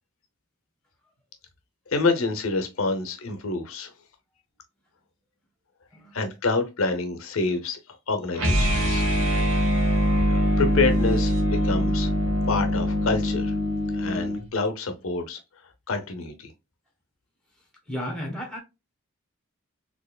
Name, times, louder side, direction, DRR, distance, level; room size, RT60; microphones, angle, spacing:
voice 1, 1.9-3.9 6.1-7.8 8.1-9.0 10.3-12.1 12.5-13.5 13.9-15.4 15.9-16.5, left 3 dB, 65° left, 0.7 m, -27 dB
sound 1, 8.3-14.4, equal, 70° right, 1.2 m, -23 dB
voice 2, 17.9-18.6, equal, 5° left, 1.2 m, -33 dB
4.3 x 2.9 x 2.2 m
head